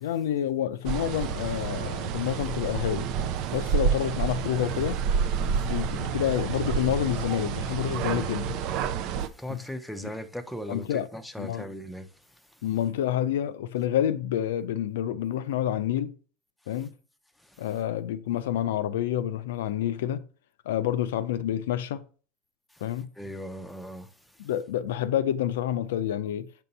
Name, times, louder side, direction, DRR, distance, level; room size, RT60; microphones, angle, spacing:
voice 1, 0.0-3.1 3.5-5.0 5.4-8.6 9.5-9.6 10.7-11.1 11.4-11.7 12.6-16.1 16.7-16.9 17.6-20.3 20.7-22.0 22.8-23.1 24.4-26.5, left 11 dB, 80° left, 0.4 m, -28 dB
sound 1, 0.8-9.3, right 7 dB, 50° right, 0.4 m, -29 dB
voice 2, 9.2-12.1 17.4-17.7 22.7-22.8 23.2-24.1, equal, ahead, 0.6 m, -38 dB
6.7 x 2.7 x 5.4 m
supercardioid pair, 120°, 0 cm